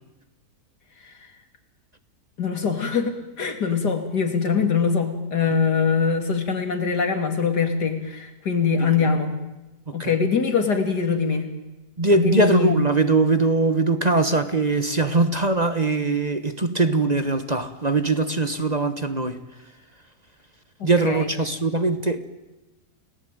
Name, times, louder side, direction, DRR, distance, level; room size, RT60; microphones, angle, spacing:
voice 1, 2.4-9.4 9.9-11.5 12.0-12.8 20.8-21.3, left 5 dB, 90° left, 6 dB, 3.3 m, -23 dB
voice 2, 12.0-19.4 20.8-22.2, right 3 dB, 25° right, 10 dB, 1.3 m, -21 dB
29.5 x 18.5 x 9.2 m, 1.1 s
omnidirectional pair, 1.7 m